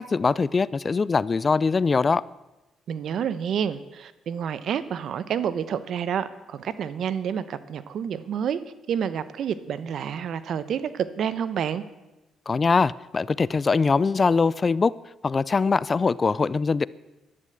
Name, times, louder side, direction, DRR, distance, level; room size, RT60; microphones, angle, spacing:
voice 1, 0.0-2.2 12.5-14.9 15.2-16.9, left 4 dB, 35° left, 20 dB, 0.4 m, -22 dB
voice 2, 2.9-8.6 8.9-11.8, right 8 dB, 65° right, 15 dB, 1.0 m, -29 dB
12.5 x 11.5 x 8.0 m, 1.0 s
cardioid pair, 90°, 0 cm